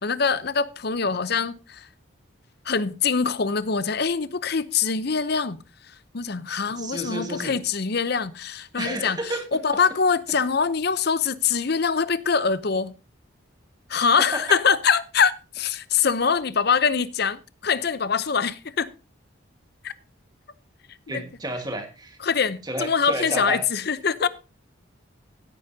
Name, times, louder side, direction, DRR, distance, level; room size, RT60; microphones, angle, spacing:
voice 1, 0.0-1.9 2.7-5.6 6.1-12.9 13.9-18.9 19.8-19.9 21.1-21.2 22.2-24.3, left 5 dB, 50° left, 0.7 m, -24 dB
voice 2, 6.8-7.6 8.8-9.5 21.1-22.2 22.6-23.6, right 1 dB, 20° right, 1.6 m, -31 dB
16.5 x 8.9 x 2.8 m
head